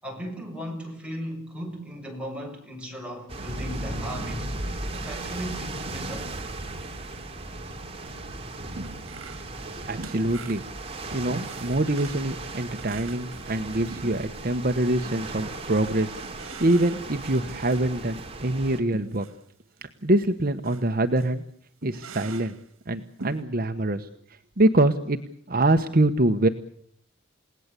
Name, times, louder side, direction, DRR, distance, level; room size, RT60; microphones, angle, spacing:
voice 1, 0.0-4.5 4.9-6.4, equal, 5° right, 7.0 m, -36 dB
sound 1, 3.3-18.8, right 2 dB, 30° right, 3.1 m, -36 dB
sound 2, 8.8-9.6 9.8-14.5 15.0-18.0 18.9-19.4 19.8-19.9 20.6-20.9 21.2-21.3 21.8-22.6 23.2-23.4, right 3 dB, 80° right, 1.9 m, -43 dB
voice 2, 9.7-10.6 11.1-16.2 16.6-19.3 19.8-21.4 21.8-22.5 22.9-24.1 24.6-25.2 25.5-26.5, right 1 dB, 45° right, 1.1 m, -24 dB
30.0 x 18.0 x 8.3 m
head